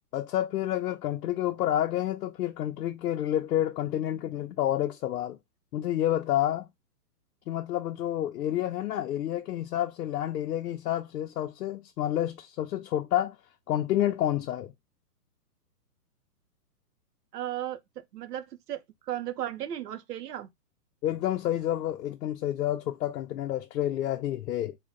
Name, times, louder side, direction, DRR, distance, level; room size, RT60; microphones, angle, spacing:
voice 1, 0.1-5.4 5.7-6.7 7.5-13.4 13.7-14.7 21.0-24.8, left 12 dB, 85° left, 0.6 m, -29 dB
voice 2, 17.3-17.8 18.1-20.5, right 12 dB, 80° right, 0.7 m, -35 dB
3.8 x 2.2 x 3.7 m
hypercardioid pair, 175°, 47 cm